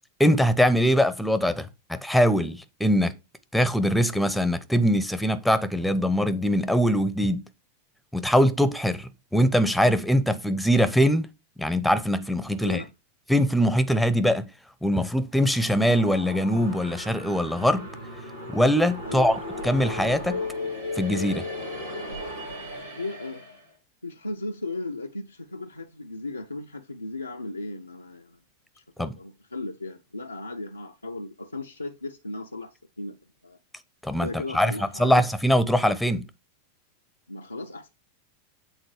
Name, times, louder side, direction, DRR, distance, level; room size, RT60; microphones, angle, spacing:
voice 1, 0.2-3.2 3.5-7.5 8.1-11.3 11.6-12.8 13.3-14.5 14.8-17.9 18.5-19.4 19.6-20.5 21.0-21.5 29.0-29.1 34.0-36.3, equal, ahead, 0.8 m, -22 dB
sound 1, 15.3-23.7, left 2 dB, 85° right, 3.1 m, -36 dB
voice 2, 23.0-23.4 24.0-28.4 28.7-33.2 33.4-33.6 34.2-35.2 37.3-37.9, left 2 dB, 85° left, 0.5 m, -36 dB
8.0 x 3.8 x 4.8 m
figure-of-eight pair, 90°, 0 cm